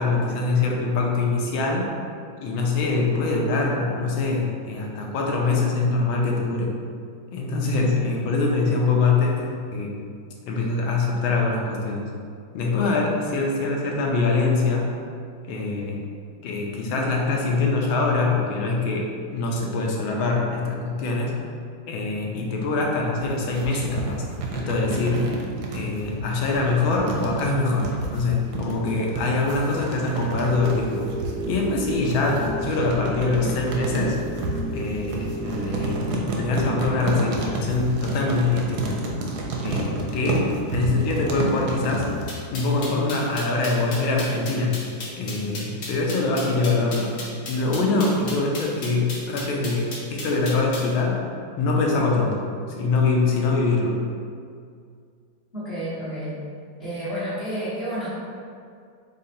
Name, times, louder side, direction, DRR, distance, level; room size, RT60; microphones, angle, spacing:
voice 1, 0.0-1.9 2.4-6.7 7.3-9.9 10.4-12.1 12.5-14.9 15.5-16.0 16.4-21.4 21.9-24.2 24.5-25.4 25.7-31.1 31.5-34.2 34.7-39.0 39.6-42.1 42.5-44.8 45.2-47.1 47.5-51.3 51.6-52.4 52.8-54.0, left 3 dB, 80° left, -1 dB, 1.4 m, -24 dB
sound 1, 23.2-42.3, right 3 dB, 70° right, 1.0 m, -30 dB
sound 2, 30.6-36.9, right 2 dB, 50° right, 0.5 m, -33 dB
sound 3, 42.3-50.9, left 2 dB, 60° left, 1.3 m, -35 dB
voice 2, 55.5-56.4 56.8-58.1, right 1 dB, 40° left, -12 dB, 1.0 m, -30 dB
4.1 x 3.9 x 2.7 m, 2.2 s
omnidirectional pair, 2.2 m